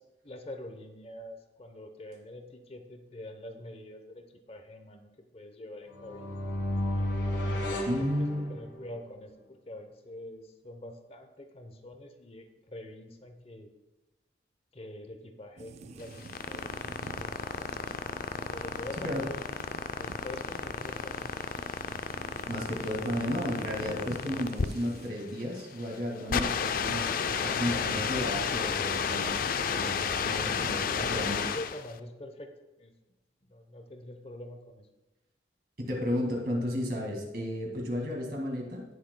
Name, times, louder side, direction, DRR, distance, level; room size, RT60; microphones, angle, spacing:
voice 1, 0.2-6.4 7.3-13.7 14.7-16.7 17.0-18.0 18.5-19.4 20.0-21.3 24.1-24.3 30.1-32.5 32.8-32.9 33.4-34.9, left 1 dB, 30° left, 6 dB, 0.8 m, -45 dB
sound 1, 5.9-8.9, left 1 dB, 65° left, 1.5 m, -32 dB
voice 2, 7.9-8.5 19.0-19.2 22.5-29.4 29.7-31.5 35.8-38.8, equal, 55° right, 0 dB, 2.0 m, -33 dB
sound 2, 15.6-25.1, right 3 dB, 35° right, 0.3 m, -47 dB
sound 3, 16.0-31.9, left 6 dB, 50° left, 0.4 m, -32 dB
17.5 x 6.6 x 2.2 m, 1.0 s
head